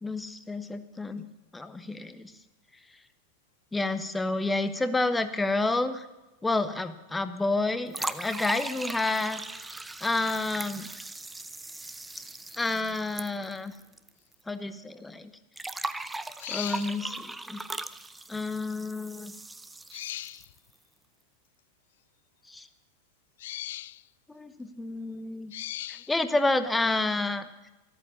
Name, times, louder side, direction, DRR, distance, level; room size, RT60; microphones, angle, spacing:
voice 1, 0.0-1.3 1.5-2.3 3.7-6.1 6.4-10.9 12.6-13.7 14.5-15.3 16.5-17.7 18.3-19.3 22.5-22.7 24.3-25.5 25.9-27.7, left 2 dB, 10° left, 11 dB, 1.1 m, -30 dB
sound 1, 7.9-14.1 14.3-14.4 15.6-20.6, right 2 dB, 5° right, 0.7 m, -38 dB
voice 2, 16.4-16.9 19.9-20.5 23.4-24.0 25.5-26.1, left 14 dB, 55° left, 21 dB, 0.4 m, -37 dB
13.5 x 13.5 x 7.0 m, 1.1 s
figure-of-eight pair, 90°, 0 cm